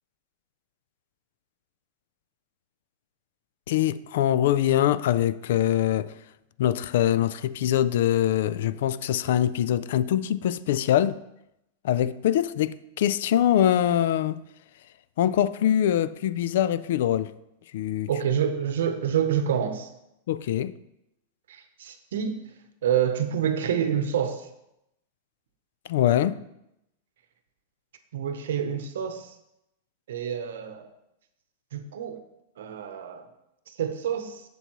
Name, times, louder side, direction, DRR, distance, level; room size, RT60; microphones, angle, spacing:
voice 1, 3.7-6.1 6.6-11.2 11.8-14.4 15.2-17.3 17.7-18.1 20.3-20.7 25.9-26.4, left 11 dB, 55° left, 0.3 m, -23 dB
voice 2, 18.1-19.9 21.5-22.4 22.8-24.5 28.1-29.3 30.1-30.9 31.7-32.2 32.6-33.3 33.8-34.4, right 8 dB, 85° right, 0.8 m, -27 dB
8.0 x 6.8 x 3.1 m
supercardioid pair, 180°, 0 cm